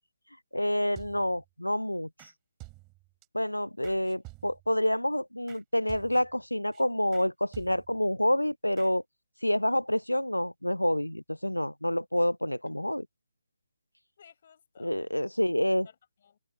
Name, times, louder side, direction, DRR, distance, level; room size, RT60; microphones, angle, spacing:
voice 1, 0.5-2.1 3.3-9.0 9.4-13.1 14.8-15.9, left 1 dB, 90° left, 0.6 m, -28 dB
sound 1, 1.0-1.5 2.2-2.3 2.6-3.3 3.8-4.8 5.5-5.6 5.9-6.4 6.7-6.8 7.1-7.3 7.5-8.1 8.8-8.9, right 24 dB, 15° right, 4.5 m, -50 dB
voice 2, 14.2-15.0 15.4-16.4, left 8 dB, 40° left, 6.7 m, -58 dB
figure-of-eight pair, 145°, 0 cm